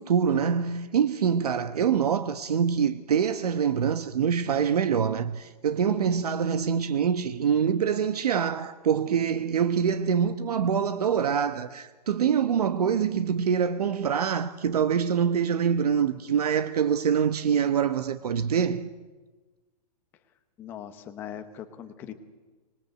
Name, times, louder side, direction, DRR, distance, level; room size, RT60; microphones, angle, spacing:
voice 1, 0.0-18.9, right 7 dB, 65° right, 1.0 m, -25 dB
voice 2, 20.6-22.1, left 9 dB, 10° left, 0.8 m, -40 dB
25.5 x 20.5 x 7.9 m
hypercardioid pair, 180°, 21 cm